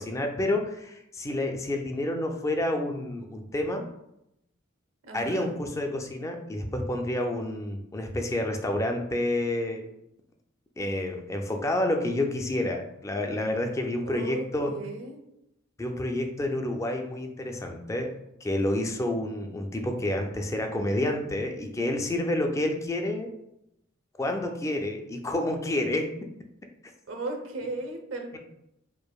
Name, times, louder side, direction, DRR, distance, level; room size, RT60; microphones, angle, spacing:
voice 1, 0.0-3.9 5.1-9.9 10.8-14.7 15.8-18.1 18.4-23.3 24.2-26.1, left 1 dB, 15° left, 3 dB, 0.3 m, -29 dB
voice 2, 5.0-5.6 14.0-15.2 27.1-28.4, right 2 dB, 85° right, 4 dB, 0.7 m, -36 dB
4.6 x 2.5 x 2.3 m, 0.84 s
head